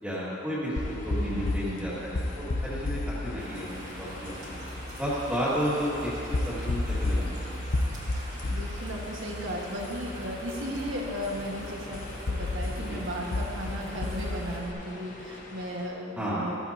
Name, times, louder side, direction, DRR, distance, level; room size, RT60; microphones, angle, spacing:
voice 1, 0.0-4.6 5.0-7.5 12.8-13.0 16.1-16.4, equal, 5° right, -9 dB, 2.1 m, -32 dB
sound 1, 0.7-15.9, left 1 dB, 35° left, 1.0 m, -46 dB
sound 2, 0.8-14.7, left 2 dB, 75° left, 0.7 m, -33 dB
voice 2, 1.2-2.0 8.1-16.6, equal, 70° right, -2 dB, 1.6 m, -36 dB
sound 3, 3.4-14.6, right 1 dB, 35° right, 2.0 m, -45 dB
13.5 x 13.5 x 2.9 m, 2.9 s
head